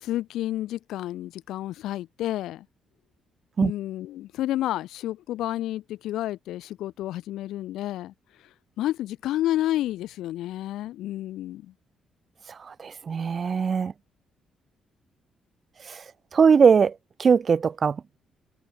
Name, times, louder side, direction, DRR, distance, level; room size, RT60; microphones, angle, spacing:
voice 1, 0.0-2.7 3.6-8.1 8.8-11.7, left 14 dB, 85° left, 2.5 m, -30 dB
voice 2, 12.5-13.9 15.8-16.0 16.3-18.0, right 6 dB, 45° right, 2.4 m, -21 dB
cardioid pair, 90°, 0 cm